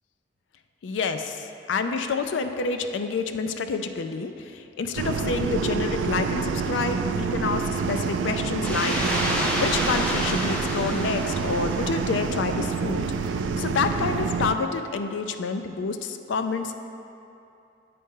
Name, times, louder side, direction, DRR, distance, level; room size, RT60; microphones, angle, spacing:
voice 1, 0.8-16.8, left 4 dB, 80° left, 7 dB, 0.4 m, -28 dB
sound 1, 5.0-14.6, right 5 dB, 80° right, 0.3 m, -27 dB
sound 2, 8.6-12.4, equal, 5° left, 0.7 m, -29 dB
9.5 x 4.2 x 3.7 m, 2.7 s
head